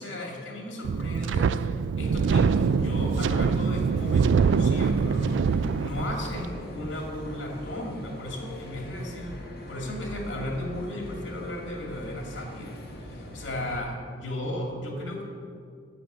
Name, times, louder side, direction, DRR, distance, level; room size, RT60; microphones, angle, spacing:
voice 1, 0.0-9.4 9.7-12.8 13.0-15.2, left 1 dB, 85° left, 0 dB, 2.2 m, -35 dB
Wind, 0.8-6.5, right 5 dB, 80° right, 0.3 m, -24 dB
sound 1, 2.0-13.8, equal, 55° left, 1.9 m, -40 dB
10.0 x 8.3 x 6.6 m, 2.2 s
head